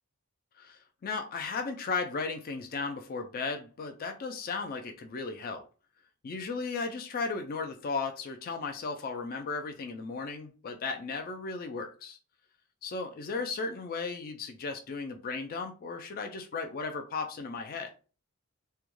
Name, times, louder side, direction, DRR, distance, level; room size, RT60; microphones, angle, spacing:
voice 1, 0.6-5.6 6.2-12.2 12.8-17.9, left 4 dB, 40° left, 0.4 m, -35 dB
2.3 x 2.2 x 3.0 m
head